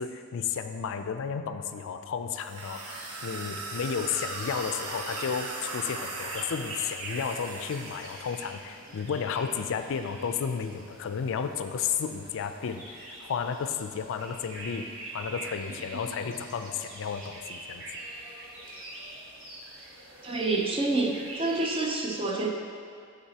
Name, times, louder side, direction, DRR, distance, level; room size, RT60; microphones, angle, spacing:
voice 1, 0.0-17.8, left 6 dB, 60° left, 8 dB, 0.4 m, -33 dB
sound 1, 2.4-8.4, right 2 dB, 90° right, 0.8 m, -38 dB
sound 2, 2.9-21.9, right 2 dB, 65° right, 1.2 m, -44 dB
voice 2, 20.2-22.5, right 3 dB, 25° right, 1 dB, 0.6 m, -28 dB
11.5 x 4.0 x 2.8 m, 2.4 s
head